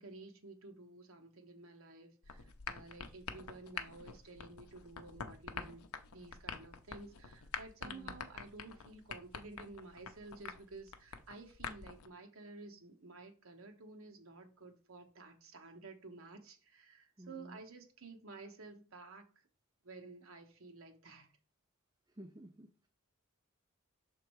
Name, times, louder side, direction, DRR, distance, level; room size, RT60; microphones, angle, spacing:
voice 1, 0.0-19.4 19.8-21.3, right 3 dB, 65° right, 1.1 m, -53 dB
sound 1, 2.2-12.1, left 6 dB, 80° left, 0.6 m, -47 dB
voice 2, 7.8-8.1 17.2-17.6 22.1-22.9, right 1 dB, 20° right, 0.4 m, -53 dB
6.3 x 3.6 x 4.6 m
head